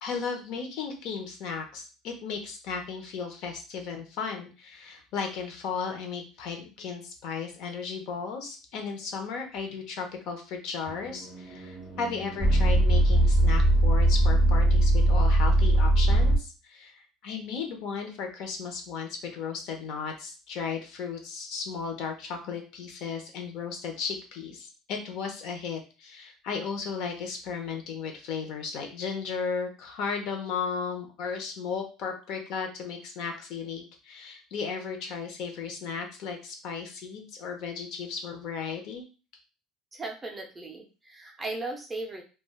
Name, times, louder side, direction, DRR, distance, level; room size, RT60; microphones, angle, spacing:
voice 1, 0.0-39.0, left 5 dB, 55° left, 3 dB, 0.6 m, -35 dB
sound 1, 10.9-16.4, right 1 dB, 20° left, 0.9 m, -21 dB
voice 2, 39.9-42.2, right 2 dB, 15° right, 2 dB, 0.4 m, -37 dB
3.1 x 2.2 x 2.2 m, 0.33 s
cardioid pair, 160°, 0 cm